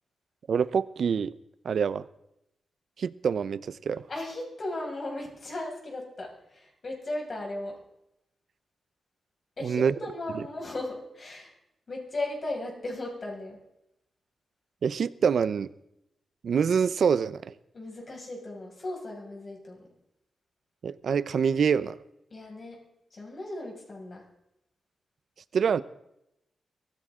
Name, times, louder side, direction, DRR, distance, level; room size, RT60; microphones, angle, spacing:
voice 1, 0.5-1.3 1.6-2.1 3.0-4.0 9.6-9.9 14.8-15.7 16.4-17.5 20.8-22.0 25.5-25.8, right 6 dB, 65° right, 16 dB, 0.7 m, -25 dB
voice 2, 4.1-7.8 9.6-11.5 11.9-13.6 17.7-19.9 22.3-22.8 23.1-24.2, left 2 dB, 45° left, -1 dB, 6.2 m, -36 dB
23.0 x 16.0 x 3.8 m, 0.82 s
wide cardioid pair, 105°, 0 cm